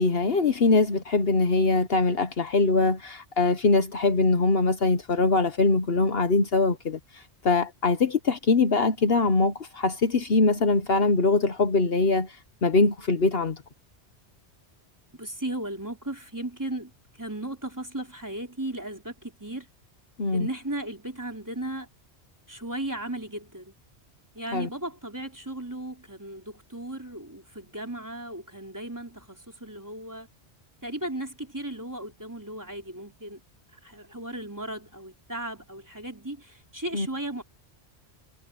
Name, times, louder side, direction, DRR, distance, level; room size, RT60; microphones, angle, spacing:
voice 1, 0.0-7.0 7.4-12.3 12.6-13.5 20.2-20.5 24.5-24.7 36.9-37.1, left 3 dB, 60° left, 1.3 m, -22 dB
voice 2, 15.1-16.9 17.2-19.7 20.3-21.9 22.5-23.7 24.3-30.3 30.8-33.4 33.7-37.4, right 1 dB, 15° right, 3.9 m, -36 dB
omnidirectional pair, 1.1 m